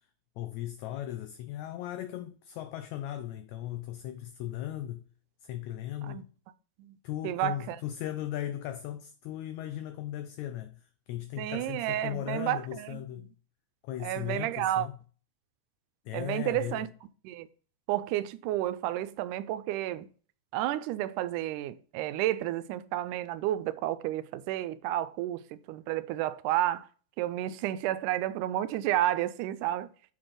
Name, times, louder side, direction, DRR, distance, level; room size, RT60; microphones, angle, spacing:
voice 1, 0.4-5.1 5.4-6.3 7.0-13.3 13.8-14.9 16.1-16.9, left 12 dB, 80° left, 1.7 m, -37 dB
voice 2, 7.2-7.8 11.4-13.3 14.0-14.9 16.1-16.9 17.2-17.5 17.9-20.1 20.5-26.9 27.2-29.9, right 14 dB, 85° right, 2.0 m, -31 dB
7.2 x 3.9 x 5.0 m
omnidirectional pair, 3.6 m